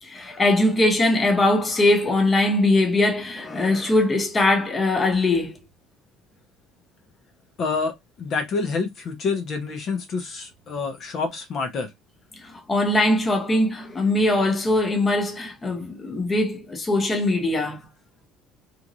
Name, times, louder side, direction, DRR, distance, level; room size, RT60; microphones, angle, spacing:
voice 1, 0.0-5.6 12.4-17.8, left 2 dB, 20° left, 1.0 m, -21 dB
voice 2, 7.6-11.9, left 4 dB, 45° left, 0.8 m, -27 dB
3.5 x 3.0 x 2.6 m
cardioid pair, 150°, 0 cm